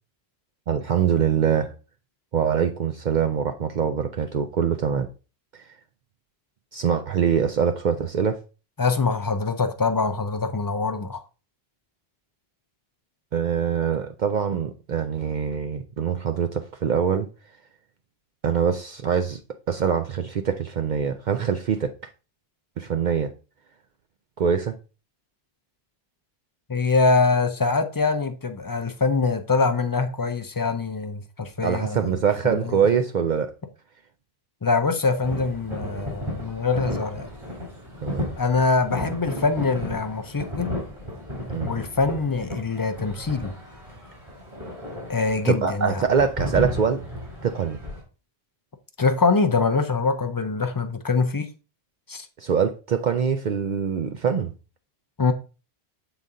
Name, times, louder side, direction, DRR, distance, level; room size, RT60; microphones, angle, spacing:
voice 1, 0.7-1.7 2.3-5.1 5.5-5.6 6.7-8.4 13.3-17.3 18.4-19.4 19.7-21.9 22.8-23.3 24.4-24.7 31.6-33.5 38.0-38.3 41.5-41.7 45.5-47.0 47.4-47.8 52.4-54.5, right 7 dB, 55° right, 0.6 m, -24 dB
voice 2, 8.8-11.2 26.7-32.2 32.4-32.8 34.6-37.3 38.4-40.7 41.6-43.5 45.1-46.0 49.0-51.5 52.1-52.3 55.2-55.3, left 4 dB, 30° left, 0.4 m, -24 dB
sound 1, 35.2-48.0, equal, 30° right, 2.9 m, -34 dB
7.0 x 3.9 x 3.6 m
omnidirectional pair, 1.1 m